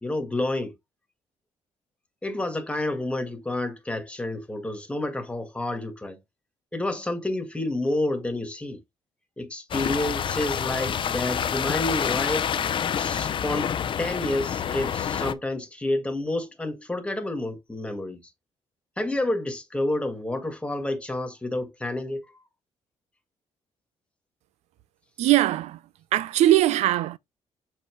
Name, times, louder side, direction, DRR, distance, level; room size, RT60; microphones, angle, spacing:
voice 1, 0.0-0.7 2.2-6.2 6.7-8.8 9.4-12.5 13.0-18.2 19.0-22.2, left 1 dB, 10° left, 1.8 m, -29 dB
sound 1, 9.7-15.3, left 8 dB, 50° left, 0.6 m, -27 dB
voice 2, 25.2-25.8 26.1-27.2, right 14 dB, 85° right, 0.4 m, -20 dB
7.0 x 4.3 x 3.1 m
cardioid pair, 105°, 11 cm